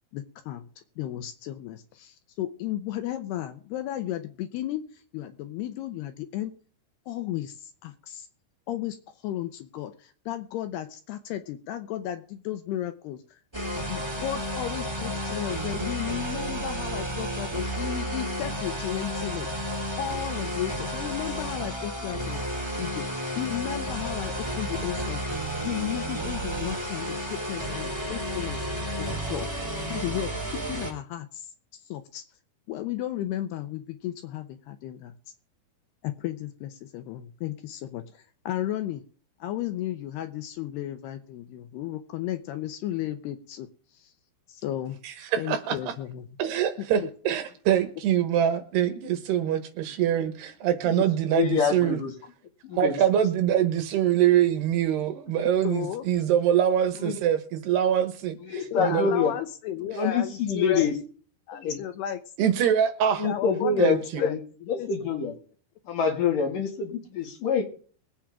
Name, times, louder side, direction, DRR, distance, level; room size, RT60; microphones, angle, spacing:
voice 1, 0.1-0.7 1.0-6.5 7.1-8.3 8.7-9.0 9.2-13.4 13.9-22.4 22.8-25.4 25.6-29.5 29.9-32.2 32.7-35.2 36.0-39.0 39.4-43.7 43.9-44.1 44.5-45.0 45.4-46.3 46.8-47.1 55.6-56.0 58.7-60.9 61.5-62.2 63.2-64.4 64.8-64.9, left 12 dB, 75° left, 9 dB, 2.7 m, -34 dB
sound 1, 13.5-30.9, equal, 5° right, 3.0 m, -32 dB
voice 2, 45.0-45.8 46.4-52.0 52.7-59.1 62.4-63.3 63.8-64.2, right 10 dB, 70° right, 9 dB, 3.1 m, -24 dB
voice 3, 51.3-52.1 52.6-53.0 57.0-57.2 58.4-59.3 59.9-60.9 61.5-61.8 63.2-64.4 64.7-65.3 65.9-67.6, left 6 dB, 55° left, 3 dB, 3.1 m, -26 dB
22.5 x 8.8 x 3.6 m, 0.42 s
omnidirectional pair, 5.2 m